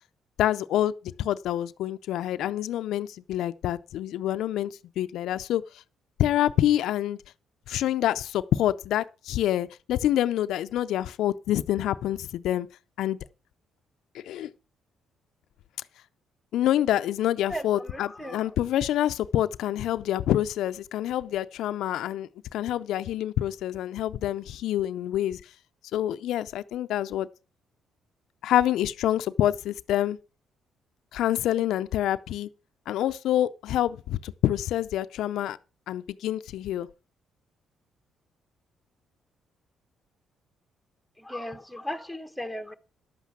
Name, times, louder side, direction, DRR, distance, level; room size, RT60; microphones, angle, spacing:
voice 1, 0.4-0.9 1.2-5.6 6.2-7.2 7.7-12.7 13.0-13.2 14.1-14.5 16.5-25.4 25.9-27.3 28.4-30.2 31.1-32.5 32.9-35.6 35.9-36.9, left 12 dB, 80° left, 0.5 m, -27 dB
voice 2, 17.5-18.6 41.2-42.8, equal, ahead, 1.4 m, -36 dB
11.0 x 8.3 x 6.0 m
cardioid pair, 90°, 0 cm